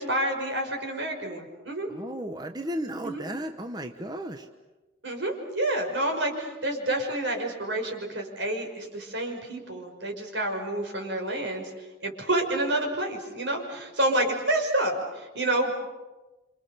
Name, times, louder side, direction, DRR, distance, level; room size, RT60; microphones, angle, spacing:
voice 1, 0.0-1.9 3.0-3.2 5.0-11.6 12.0-15.7, right 1 dB, 80° right, 2 dB, 5.9 m, -28 dB
voice 2, 1.9-4.5, right 1 dB, 20° right, 7 dB, 1.0 m, -34 dB
29.0 x 26.5 x 6.9 m, 1.1 s
head